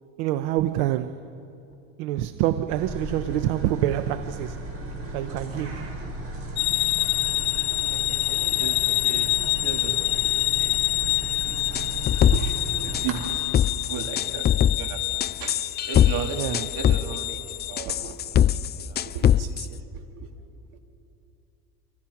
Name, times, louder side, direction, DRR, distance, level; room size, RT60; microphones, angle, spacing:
voice 1, 0.2-1.4 2.0-4.6 5.1-5.9 16.4-16.6, right 13 dB, 85° right, 0.8 m, -26 dB
sound 1, 2.7-13.2, right 1 dB, 40° right, 5.9 m, -35 dB
sound 2, 6.6-17.8, left 21 dB, 90° left, 0.7 m, -27 dB
voice 2, 7.9-10.8 11.1-13.4 13.8-14.5 14.8-15.6 15.8-17.4 17.7-20.3, right 6 dB, 70° right, 3.1 m, -36 dB
sound 3, 11.7-12.6 12.9-13.3 13.5-14.8 15.2-16.1 16.4-17.2 17.6-19.6, left 10 dB, 30° left, 0.5 m, -21 dB
29.0 x 27.0 x 5.9 m
supercardioid pair, 115°, 34 cm